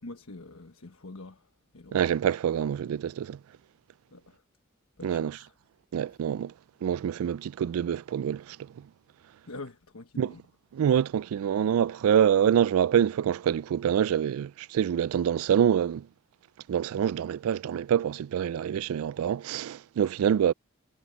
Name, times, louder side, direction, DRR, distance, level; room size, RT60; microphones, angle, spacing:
voice 1, 0.0-2.0 4.1-4.4 5.0-5.5 6.1-6.2 9.4-10.4, left 2 dB, 90° left, 1.3 m, -45 dB
voice 2, 1.9-3.4 5.0-5.4 5.9-6.5 6.8-8.6 10.2-10.3 10.7-16.1 16.7-20.5, right 9 dB, 85° right, 0.3 m, -26 dB
head